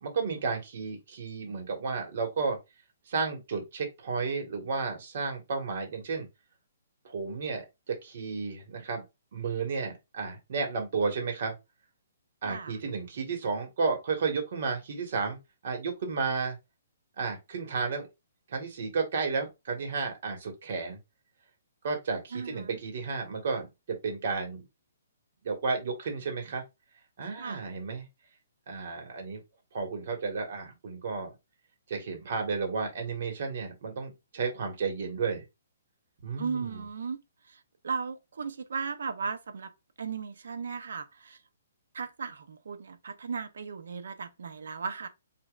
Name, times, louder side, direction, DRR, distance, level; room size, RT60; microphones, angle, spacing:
voice 1, 0.0-2.6 3.1-6.3 7.0-9.0 9.3-11.5 12.4-15.4 15.6-16.6 17.2-18.1 18.5-21.0 21.8-24.6 25.4-26.6 27.2-28.1 28.7-29.4 29.7-31.3 31.9-35.4 36.2-36.9, right 4 dB, 50° right, 1.6 m, -32 dB
voice 2, 12.4-12.8 22.3-22.8 27.4-27.6 36.4-37.2 37.5-39.7 40.0-41.4 41.9-45.1, right 5 dB, 75° right, 0.7 m, -36 dB
5.1 x 2.8 x 2.4 m
hypercardioid pair, 165°, 0 cm